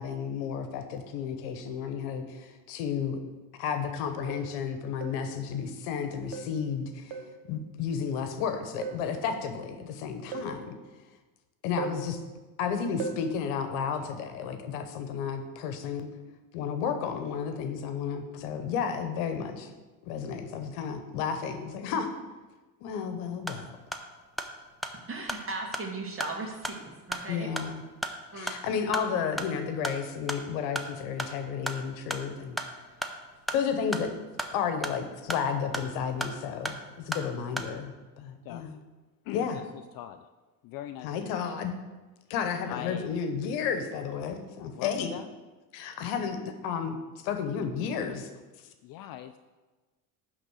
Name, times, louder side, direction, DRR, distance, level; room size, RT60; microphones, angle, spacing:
voice 1, 0.0-3.2 3.6-7.2 7.5-10.7 11.6-12.2 12.6-16.1 16.5-19.7 20.1-22.1 22.8-23.8 27.3-27.8 28.3-32.6 33.5-34.1 34.5-38.8 39.3-39.6 41.0-41.7 42.3-45.1 45.7-47.0 47.2-48.3, left 7 dB, 75° left, 8 dB, 1.1 m, -32 dB
sound 1, 3.3-3.4 4.3-4.6 5.0-5.3 6.3-6.6 7.1-7.4 8.8-9.1 10.3-10.6 11.8-12.1 13.0-13.3, right 5 dB, 65° right, 0.9 m, -38 dB
sound 2, 23.3-37.7, equal, ahead, 0.6 m, -38 dB
voice 2, 25.1-27.5 28.3-29.1, right 3 dB, 30° right, 0 dB, 2.2 m, -37 dB
voice 3, 39.2-39.6 39.9-40.3 40.6-41.4 42.6-43.2 44.7-45.3 48.8-49.4, left 11 dB, 50° left, 9 dB, 0.5 m, -40 dB
10.5 x 3.8 x 6.3 m, 1.2 s
supercardioid pair, 90°, 45 cm